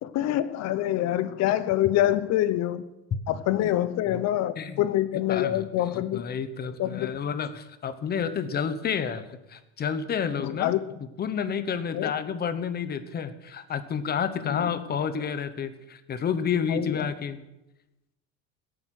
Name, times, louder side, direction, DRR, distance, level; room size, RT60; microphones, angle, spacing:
voice 1, 0.0-2.8 3.3-6.2 6.8-7.1 10.4-10.8 11.9-12.1 14.4-14.7 16.7-17.1, left 13 dB, 50° left, 14 dB, 0.8 m, -26 dB
voice 2, 5.3-5.7 5.9-10.8 11.2-17.4, left 7 dB, 30° left, 12 dB, 1.1 m, -30 dB
18.0 x 8.7 x 6.5 m, 0.95 s
cardioid pair, 140°, 34 cm